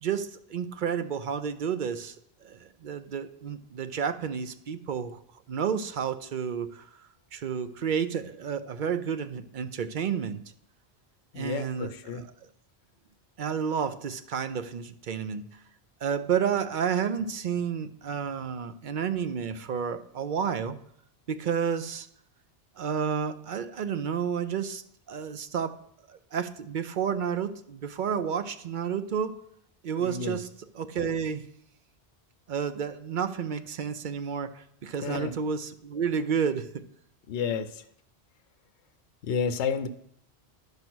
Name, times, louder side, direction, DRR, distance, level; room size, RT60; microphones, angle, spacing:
voice 1, 0.0-2.1 2.4-5.2 5.5-6.9 7.3-10.4 11.4-12.2 13.4-15.5 16.0-20.8 21.3-22.1 22.8-24.8 25.1-25.7 26.1-29.3 29.8-30.5 30.7-31.4 32.5-36.8, right 7 dB, 55° right, 11 dB, 0.7 m, -31 dB
voice 2, 11.3-12.2 30.0-30.4 35.0-35.4 37.3-37.8 39.2-39.9, left 6 dB, 85° left, 10 dB, 0.9 m, -31 dB
12.0 x 5.3 x 6.1 m, 0.69 s
omnidirectional pair, 1.1 m